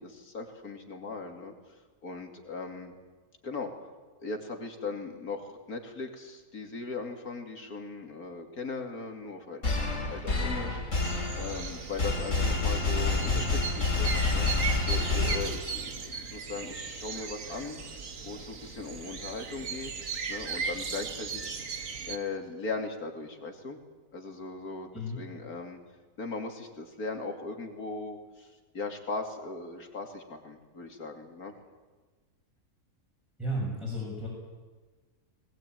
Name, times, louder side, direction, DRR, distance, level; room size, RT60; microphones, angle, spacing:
voice 1, 0.0-1.5 2.0-2.9 3.4-3.7 4.2-9.6 10.0-10.8 11.3-17.8 18.2-21.6 22.1-23.8 24.1-25.8 26.2-31.5, left 3 dB, 80° left, 4 dB, 3.1 m, -39 dB
sound 1, 9.6-16.0, left 3 dB, 55° left, 3.4 m, -28 dB
sound 2, 11.0-22.2, right 5 dB, 60° right, 1.9 m, -37 dB
voice 2, 13.3-13.8 24.9-25.2 33.4-34.3, equal, ahead, -6 dB, 6.9 m, -34 dB
20.5 x 19.5 x 9.2 m, 1.3 s
omnidirectional pair, 1.6 m